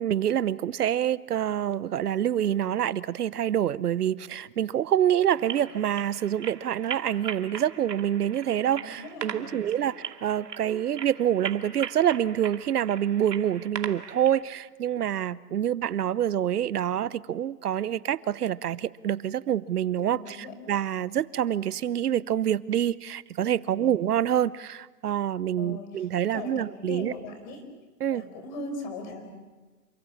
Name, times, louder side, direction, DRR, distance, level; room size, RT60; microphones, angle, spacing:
voice 1, 0.0-27.1 28.0-28.2, right 10 dB, 70° right, 19 dB, 0.8 m, -26 dB
sound 1, 5.3-14.4, right 7 dB, 90° right, 2.7 m, -40 dB
voice 2, 8.7-9.8 20.0-20.5 23.7-24.0 25.6-27.6 28.1-29.3, left 2 dB, 30° left, 6 dB, 4.7 m, -40 dB
28.5 x 25.0 x 7.2 m, 1.3 s
hypercardioid pair, 170°, 47 cm